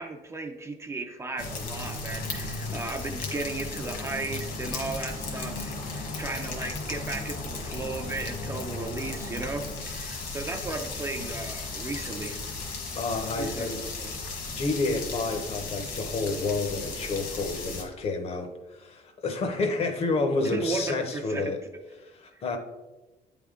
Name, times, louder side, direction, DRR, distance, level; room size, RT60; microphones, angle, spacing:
voice 1, 0.0-12.4 13.4-14.1 20.4-21.6 22.3-22.6, right 3 dB, 20° right, 5 dB, 0.4 m, -35 dB
sound 1, 1.4-17.8, left 3 dB, 65° left, 1.4 m, -35 dB
voice 2, 12.9-13.8 14.6-21.6 22.0-22.6, left 3 dB, 40° left, 6 dB, 0.7 m, -29 dB
9.0 x 3.5 x 3.6 m, 1.1 s
cardioid pair, 170°, 15 cm